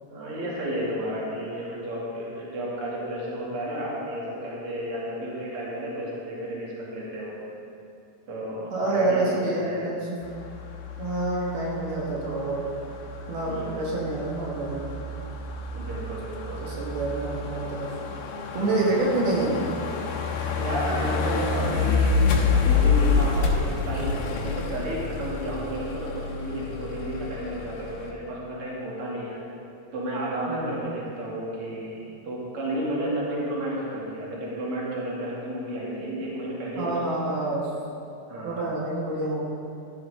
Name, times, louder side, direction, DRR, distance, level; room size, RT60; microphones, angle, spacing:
voice 1, 0.1-7.3 8.3-9.8 13.5-13.9 15.7-16.7 18.5-19.0 20.6-29.4 29.9-36.9 37.3-37.5 38.3-38.6, right 1 dB, 40° right, -6 dB, 3.2 m, -32 dB
voice 2, 8.7-10.1 11.0-12.6 13.3-14.9 16.6-17.9 18.5-19.7 30.5-30.8 36.8-37.7 38.4-39.4, right 2 dB, 75° right, -4 dB, 3.7 m, -27 dB
sound 1, 10.2-28.1, left 4 dB, 85° left, 3.2 m, -28 dB
14.5 x 13.0 x 3.8 m, 2.6 s
omnidirectional pair, 4.5 m